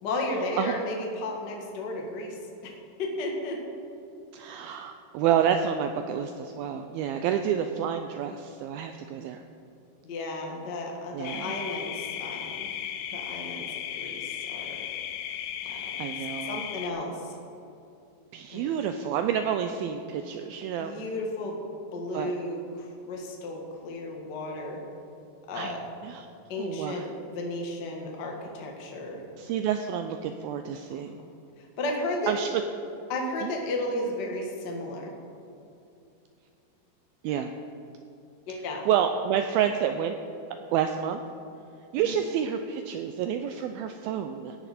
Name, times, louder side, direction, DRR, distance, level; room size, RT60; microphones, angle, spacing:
voice 1, 0.0-2.4 2.6-2.7 3.0-3.6 10.0-12.7 13.1-14.8 15.6-16.0 16.4-17.4 18.5-18.7 20.8-21.6 21.9-24.8 25.5-25.8 26.5-27.1 27.3-29.2 30.9-31.1 31.6-32.3 33.1-35.1 38.5-38.9 42.0-42.3, left 2 dB, 55° left, 0 dB, 1.2 m, -34 dB
voice 2, 4.3-9.4 11.1-11.5 15.7-16.6 18.3-20.9 22.1-22.3 25.5-25.7 26.0-26.3 26.6-27.0 29.4-31.2 32.3-32.5 33.4-33.5 37.2-37.5 38.9-40.2 40.7-41.2 41.9-44.6, right 9 dB, 80° right, 7 dB, 2.2 m, -29 dB
sound 1, 11.2-16.9, left 10 dB, 85° left, 2.7 m, -35 dB
17.0 x 10.5 x 4.2 m, 2.7 s
omnidirectional pair, 4.7 m